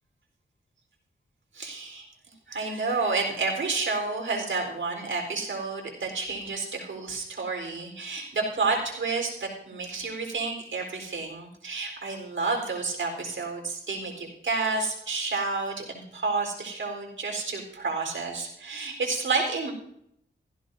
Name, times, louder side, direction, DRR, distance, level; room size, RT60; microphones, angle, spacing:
voice 1, 1.5-2.1 2.5-19.7, right 3 dB, 75° right, 2 dB, 4.2 m, -30 dB
17.0 x 15.0 x 2.7 m, 0.74 s
wide cardioid pair, 75°, 20 cm